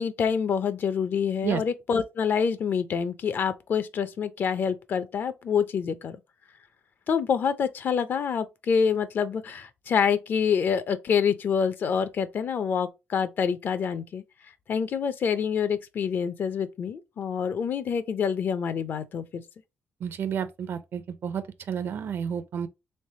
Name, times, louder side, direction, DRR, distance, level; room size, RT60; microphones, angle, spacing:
voice 1, 0.0-6.2 7.1-14.2 14.7-19.4, left 6 dB, 55° left, 0.5 m, -26 dB
voice 2, 20.0-22.7, right 7 dB, 65° right, 0.5 m, -31 dB
3.5 x 3.3 x 2.7 m
cardioid pair, 110°, 4 cm